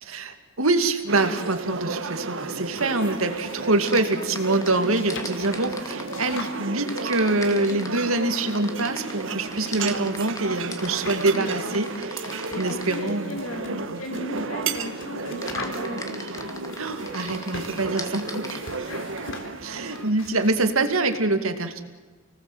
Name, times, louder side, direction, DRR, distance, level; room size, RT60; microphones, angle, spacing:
voice 1, 0.0-13.4 13.7-14.0 16.8-18.5 19.6-21.8, right 2 dB, 80° right, 7 dB, 2.5 m, -25 dB
sound 1, 1.1-20.1, right 3 dB, 65° right, 1.7 m, -33 dB
sound 2, 2.6-21.3, left 3 dB, 65° left, 3.8 m, -44 dB
sound 3, 3.9-6.5 6.9-13.1 15.4-18.6, left 2 dB, 15° left, 2.2 m, -38 dB
voice 2, 9.6-9.9 11.3-11.5 12.5-16.2 18.9-19.5 20.2-20.4, left 1 dB, 85° left, 3 dB, 3.1 m, -37 dB
30.0 x 19.0 x 8.1 m, 1.3 s
head